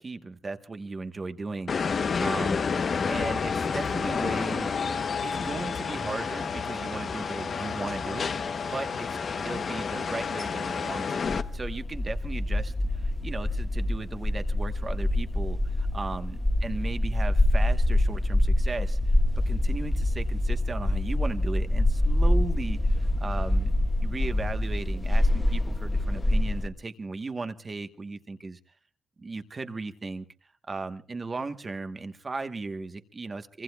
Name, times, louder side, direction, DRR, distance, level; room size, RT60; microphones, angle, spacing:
voice 1, 0.0-1.7 2.2-2.7 3.1-8.3 8.6-9.1 9.4-11.3 11.5-19.1 19.5-23.8 24.0-28.6 29.2-30.2 30.7-33.6, right 3 dB, 25° right, 8 dB, 1.2 m, -36 dB
sound 1, 1.7-11.4, left 5 dB, 45° left, 0.9 m, -30 dB
sound 2, 11.3-26.7, left 1 dB, 15° left, 1.5 m, -25 dB
26.0 x 24.0 x 2.3 m, 0.41 s
wide cardioid pair, 145°, 0 cm